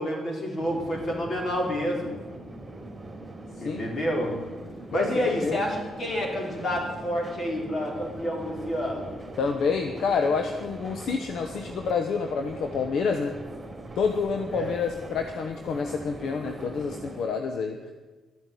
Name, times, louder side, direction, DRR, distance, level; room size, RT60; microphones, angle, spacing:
voice 1, 0.0-2.1 3.6-4.4 4.9-9.1 14.5-14.7, equal, 45° left, 0 dB, 4.5 m, -29 dB
sound 1, 0.6-17.2, right 2 dB, 20° right, 2.8 m, -41 dB
voice 2, 4.9-5.6 9.4-13.4 14.0-17.9, left 5 dB, 70° left, 6 dB, 1.1 m, -28 dB
12.5 x 9.2 x 8.6 m, 1.3 s
cardioid pair, 90°, 0 cm